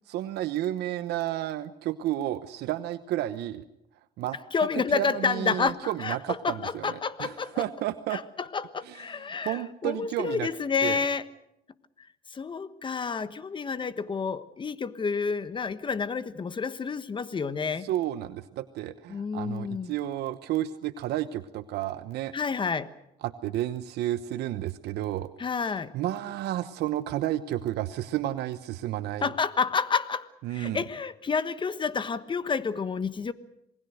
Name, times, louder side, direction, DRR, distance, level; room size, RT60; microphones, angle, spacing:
voice 1, 0.1-3.6 4.2-4.4 4.7-8.2 8.8-10.5 10.8-11.1 17.8-22.3 23.2-25.3 25.9-29.3 30.4-30.8, right 13 dB, 80° right, 11 dB, 1.0 m, -31 dB
voice 2, 4.5-6.2 6.4-7.6 8.1-8.2 8.5-11.2 12.3-17.9 19.1-19.9 22.3-22.9 25.4-25.9 29.2-33.3, left 5 dB, 30° left, 14 dB, 1.3 m, -29 dB
27.5 x 20.0 x 6.5 m, 0.80 s
cardioid pair, 110°, 17 cm